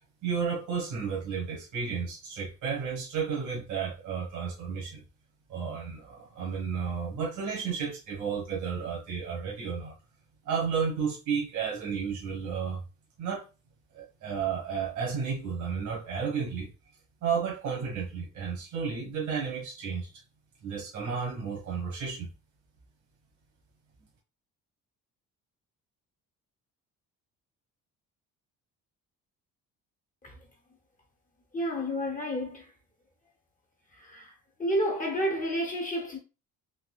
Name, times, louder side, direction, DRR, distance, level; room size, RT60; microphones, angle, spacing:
voice 1, 0.2-5.0 5.5-9.9 10.4-12.8 13.2-13.5 13.9-16.7 17.2-20.1 20.6-22.3, right 6 dB, 65° right, 1.4 m, -32 dB
voice 2, 31.5-32.6 34.0-34.3 34.6-36.2, equal, 25° left, 0.8 m, -30 dB
4.1 x 2.8 x 2.3 m
cardioid pair, 140°, 32 cm